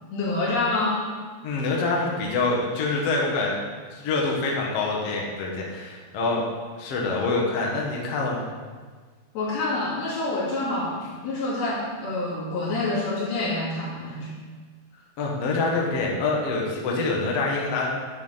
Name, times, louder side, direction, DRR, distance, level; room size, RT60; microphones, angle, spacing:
voice 1, 0.1-1.0 9.3-14.3, left 2 dB, 85° left, -7 dB, 4.6 m, -27 dB
voice 2, 1.4-3.6 3.9-6.5 6.8-8.5 15.2-17.9, left 3 dB, 55° left, -2 dB, 1.9 m, -25 dB
11.0 x 7.4 x 4.1 m, 1.5 s
omnidirectional pair, 4.3 m